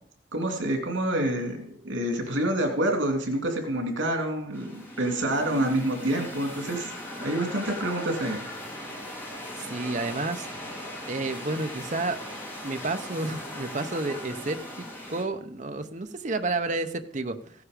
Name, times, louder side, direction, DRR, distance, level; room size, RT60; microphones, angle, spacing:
voice 1, 0.3-6.9 7.2-8.4, right 1 dB, 90° right, 3 dB, 2.7 m, -27 dB
sound 1, 4.5-15.2, left 1 dB, 10° left, 2.9 m, -39 dB
voice 2, 9.6-10.5 11.1-12.2 12.6-17.5, right 2 dB, 40° right, 8 dB, 0.8 m, -31 dB
15.5 x 9.5 x 5.1 m, 0.68 s
head